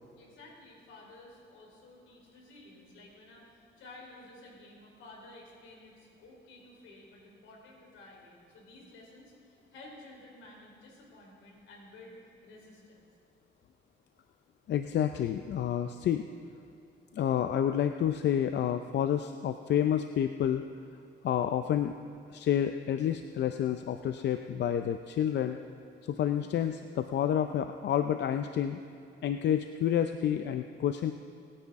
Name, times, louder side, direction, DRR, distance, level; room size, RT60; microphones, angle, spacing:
voice 1, 0.2-12.2 12.4-13.1, left 2 dB, 85° left, -1 dB, 3.9 m, -53 dB
voice 2, 14.7-16.2 17.1-20.6 21.2-21.9 22.3-25.6 26.0-28.8 29.2-31.1, left 10 dB, 60° left, 8 dB, 0.5 m, -29 dB
25.5 x 10.0 x 3.6 m, 2.5 s
cardioid pair, 90°, 20 cm